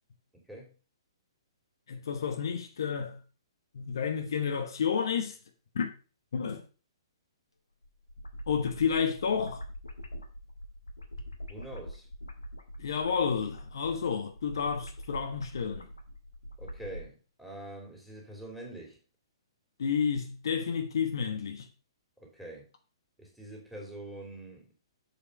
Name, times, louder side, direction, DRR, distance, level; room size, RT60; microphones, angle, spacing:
voice 1, 0.3-0.7 11.5-12.1 16.6-19.0 22.2-22.7 23.2-24.7, right 1 dB, ahead, 3.2 m, -45 dB
voice 2, 1.9-3.2 3.7-5.4 5.7-5.9 6.3-6.6 8.5-9.6 12.8-15.9 19.8-21.7, left 6 dB, 60° left, 1.3 m, -30 dB
sound 1, 7.8-17.1, equal, 85° left, 1.9 m, -43 dB
7.4 x 5.4 x 5.4 m
figure-of-eight pair, 120°, 3 cm